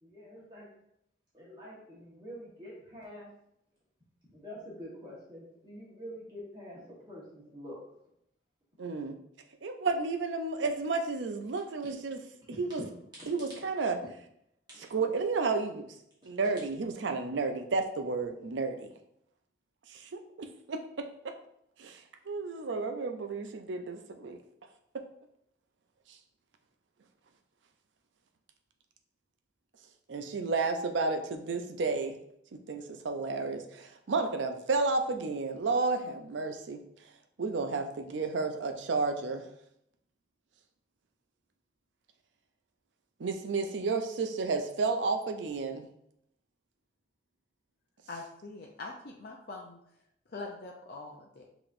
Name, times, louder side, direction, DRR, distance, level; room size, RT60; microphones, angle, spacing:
voice 1, 0.0-0.7 1.3-3.3 4.3-7.8 12.5-12.6 13.2-13.3 14.7-14.8 16.2-16.3, equal, 25° right, -7 dB, 1.3 m, -46 dB
voice 2, 8.8-9.2 9.6-12.2 12.6-12.8 13.3-14.0 14.9-15.8 16.2-18.9 19.9-21.3 21.8-24.4 30.1-32.2 32.5-36.8 37.4-39.5 43.2-45.9, right 3 dB, 90° right, 6 dB, 0.5 m, -32 dB
voice 3, 48.1-49.8 50.3-51.4, left 3 dB, 55° left, -1 dB, 0.5 m, -43 dB
5.8 x 2.9 x 2.6 m, 0.74 s
head